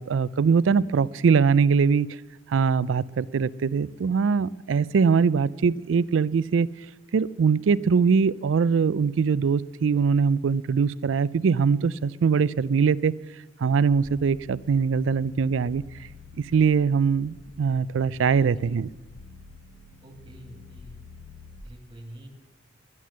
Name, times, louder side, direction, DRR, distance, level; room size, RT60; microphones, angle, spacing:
voice 1, 0.0-2.1 2.5-6.7 7.1-13.1 13.6-15.8 16.4-18.9, right 5 dB, 85° right, 19 dB, 0.4 m, -22 dB
sound 1, 13.9-21.6, left 4 dB, 80° left, 0.9 m, -48 dB
voice 2, 20.0-21.0 21.6-22.3, right 1 dB, 25° right, 3 dB, 2.4 m, -46 dB
11.0 x 11.0 x 7.4 m, 1.1 s
head